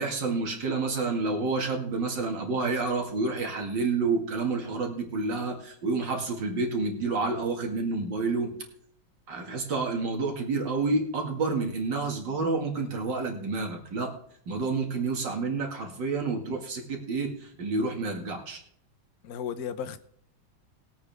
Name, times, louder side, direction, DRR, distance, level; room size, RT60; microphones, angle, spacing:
voice 1, 0.0-8.5 9.3-14.1 14.5-18.6, right 3 dB, 70° right, 2.7 m, -29 dB
voice 2, 19.2-20.0, left 8 dB, 60° left, 1.3 m, -35 dB
20.0 x 8.5 x 3.5 m
omnidirectional pair, 2.0 m